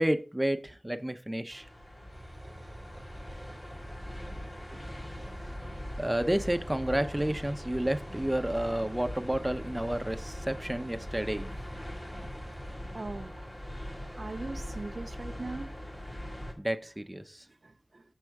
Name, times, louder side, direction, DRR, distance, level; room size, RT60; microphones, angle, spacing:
voice 1, 0.0-1.7 6.0-11.5 16.6-17.4, right 1 dB, 15° right, 0.7 m, -30 dB
sound 1, 1.5-16.5, equal, 35° left, 1.9 m, -41 dB
sound 2, 2.1-12.8, right 1 dB, 45° right, 0.9 m, -49 dB
voice 2, 12.9-13.4 14.1-15.7 17.6-18.0, right 3 dB, 65° right, 0.4 m, -40 dB
6.1 x 5.5 x 3.4 m
wide cardioid pair, 55°, 0 cm